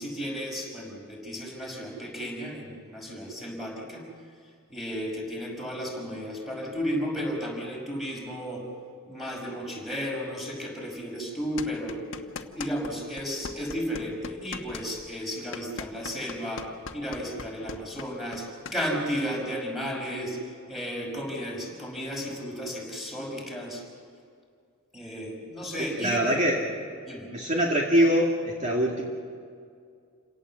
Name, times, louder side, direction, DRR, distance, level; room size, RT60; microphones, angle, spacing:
voice 1, 0.0-4.0 4.7-8.6 9.1-12.0 12.4-16.7 16.9-20.4 20.7-23.8 24.9-26.3 27.0-27.3, equal, ahead, -1 dB, 5.6 m, -33 dB
sound 1, 11.6-12.9 13.2-18.8, left 4 dB, 65° left, 1.2 m, -39 dB
voice 2, 26.0-26.7 27.3-29.0, equal, 35° right, -1 dB, 2.3 m, -23 dB
28.0 x 18.0 x 7.5 m, 2.2 s
head